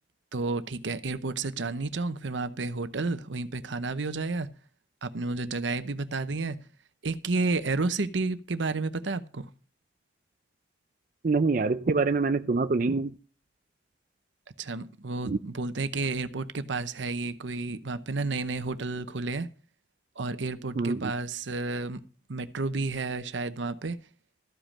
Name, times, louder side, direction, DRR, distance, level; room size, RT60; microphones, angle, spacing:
voice 1, 0.3-4.5 5.0-6.6 7.0-9.5 14.6-19.5 20.2-22.0 22.3-24.0, right 3 dB, 85° right, 0.8 m, -31 dB
voice 2, 11.2-13.1 15.3-15.4 20.8-21.0, right 3 dB, 45° right, 0.4 m, -25 dB
13.5 x 5.2 x 7.2 m
head